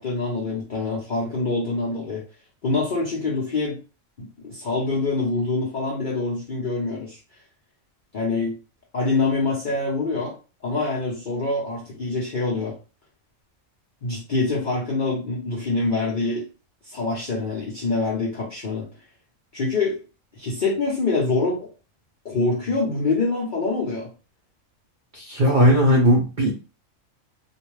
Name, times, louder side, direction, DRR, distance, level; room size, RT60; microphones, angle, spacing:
voice 1, 0.0-2.2 2.6-3.8 4.2-7.2 8.1-8.6 8.9-10.3 10.6-12.7 14.0-16.5 16.8-18.9 19.5-20.0 20.4-21.7 22.2-24.1, left 3 dB, 50° left, -5 dB, 0.6 m, -25 dB
voice 2, 25.1-26.5, equal, 55° right, -3 dB, 0.5 m, -17 dB
2.5 x 2.1 x 3.1 m, 0.33 s
omnidirectional pair, 1.5 m